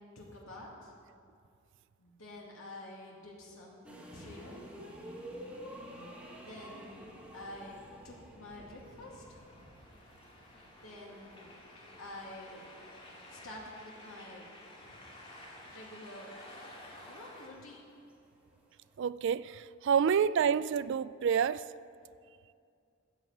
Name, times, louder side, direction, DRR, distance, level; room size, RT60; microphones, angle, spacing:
voice 1, 0.1-0.9 2.0-4.6 6.3-7.8 8.0-9.4 10.6-11.5 12.0-12.6 13.3-14.5 14.8-15.0 15.7-16.3 17.1-17.9, left 1 dB, 85° left, -3 dB, 2.3 m, -49 dB
e-Train Arrives Departs, 3.8-18.9, equal, 5° right, 1.7 m, -52 dB
sound 1, 8.5-17.5, left 1 dB, 25° left, 2.3 m, -53 dB
voice 2, 19.0-21.7, right 7 dB, 60° right, 17 dB, 0.3 m, -28 dB
13.5 x 7.8 x 7.9 m, 2.4 s
head